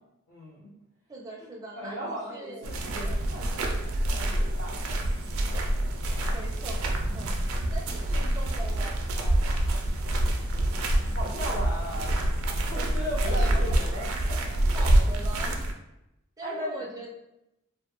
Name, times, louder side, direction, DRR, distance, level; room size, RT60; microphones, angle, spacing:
voice 1, 0.3-0.7 1.8-5.0 11.1-12.3 12.7-14.7 16.4-16.8, equal, 75° left, -8 dB, 0.7 m, -37 dB
voice 2, 1.1-2.7 3.0-3.4 5.3-5.7 6.3-7.3 7.7-9.7 13.2-14.0 14.7-15.7 16.4-17.1, right 1 dB, 15° right, -1 dB, 0.4 m, -42 dB
sound 1, 2.6-15.7, right 1 dB, 75° right, 0.4 m, -26 dB
2.3 x 2.1 x 2.9 m, 0.87 s
head